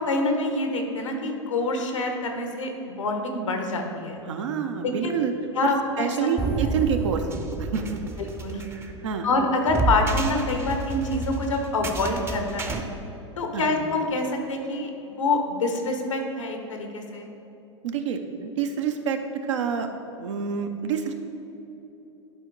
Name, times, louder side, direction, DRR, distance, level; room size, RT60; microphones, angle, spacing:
voice 1, 0.0-4.2 4.8-5.2 5.5-6.4 8.2-8.6 9.2-12.8 13.4-14.9 15.2-17.3, left 2 dB, 85° left, 3 dB, 1.1 m, -26 dB
voice 2, 4.3-5.3 5.6-5.7 6.0-7.2 7.6-8.0 9.0-9.3 13.5-13.7 17.8-19.2 19.5-19.9 20.2-21.1, right 7 dB, 70° right, 6 dB, 0.7 m, -27 dB
sound 1, 6.4-12.8, right 3 dB, 15° right, 0.6 m, -30 dB
11.0 x 4.4 x 3.9 m, 3.0 s
hypercardioid pair, 95°, 16 cm